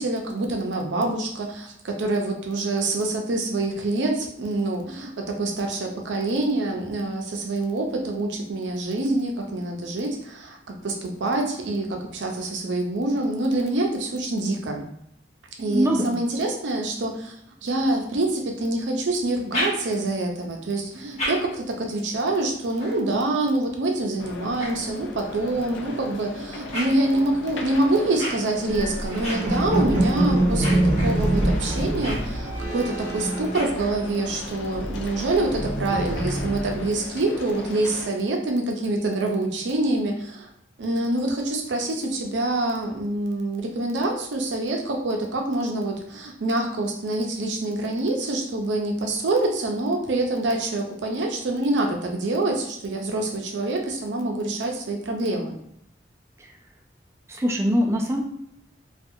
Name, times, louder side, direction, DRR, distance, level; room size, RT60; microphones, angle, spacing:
voice 1, 0.0-10.6 10.8-14.8 15.6-17.3 17.6-40.5 40.8-55.6, right 2 dB, 80° right, 2 dB, 0.5 m, -26 dB
voice 2, 15.7-16.2 56.4-56.5 57.3-58.2, equal, 15° right, 1 dB, 0.3 m, -22 dB
sound 1, 19.2-20.2 20.8-25.5 26.0-34.3, equal, 35° left, 0.9 m, -37 dB
sound 2, 24.2-38.1, left 2 dB, 80° left, 0.4 m, -38 dB
sound 3, 28.7-34.3 34.6-36.8, right 1 dB, 50° right, 0.8 m, -25 dB
2.5 x 2.3 x 2.6 m, 0.74 s
head